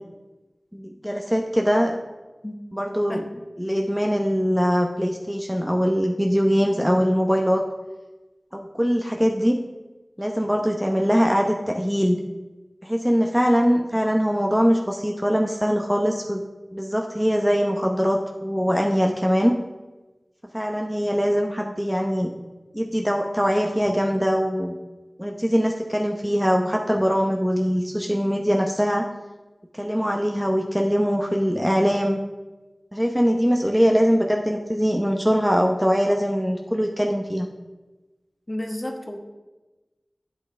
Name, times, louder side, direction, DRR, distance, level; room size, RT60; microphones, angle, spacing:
voice 1, 0.7-2.0 2.7-3.2 3.6-7.6 8.5-9.6 10.2-12.2 12.8-16.4 16.7-19.6 20.5-22.3 22.7-24.8 25.2-29.1 29.7-32.2 32.9-37.5, equal, 5° right, 2 dB, 0.8 m, -22 dB
voice 2, 38.5-39.2, left 1 dB, 25° left, 3 dB, 1.3 m, -31 dB
12.0 x 8.1 x 3.4 m, 1.1 s
wide cardioid pair, 55°, 0 cm